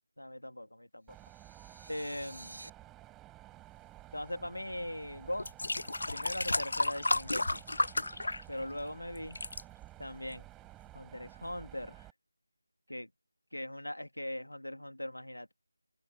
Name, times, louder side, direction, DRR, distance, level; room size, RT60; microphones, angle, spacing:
voice 1, 0.2-1.2 1.9-2.6 4.1-5.5 6.1-7.7 8.5-9.4 10.0-10.5 10.9-12.1 12.9-13.1 13.5-15.5, left 1 dB, 85° left, 2.3 m, -40 dB
Mechanisms, 1.1-12.1, right 16 dB, 5° right, 5.1 m, -53 dB
sound 1, 1.1-2.7, right 2 dB, 55° right, 7.8 m, -51 dB
sound 2, 4.8-4.9 5.4-8.9 9.2-9.6 10.3-10.4, left 2 dB, 60° left, 0.4 m, -32 dB
figure-of-eight pair, 165°, 0 cm